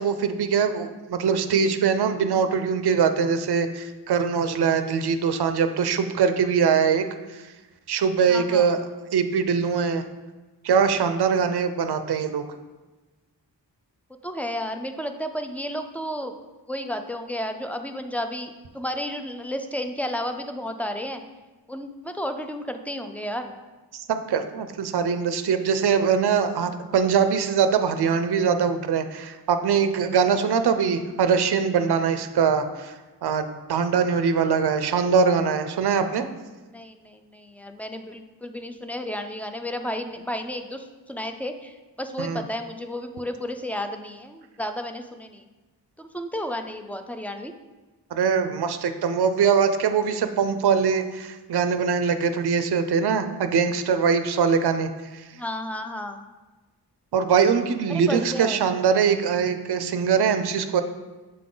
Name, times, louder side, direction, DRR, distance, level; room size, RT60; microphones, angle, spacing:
voice 1, 0.0-7.0 7.3-7.4 7.9-8.8 9.1-10.0 10.6-12.4 23.9-32.9 33.2-36.3 42.2-42.4 48.1-55.2 57.1-60.8, right 6 dB, 65° right, 9 dB, 0.5 m, -22 dB
voice 2, 8.3-8.7 14.2-16.4 16.7-21.2 21.7-23.6 36.6-45.5 46.0-47.5 55.3-56.2 57.9-58.6, equal, 5° left, 6 dB, 0.3 m, -32 dB
7.6 x 3.8 x 3.7 m, 1.2 s
wide cardioid pair, 90°, 42 cm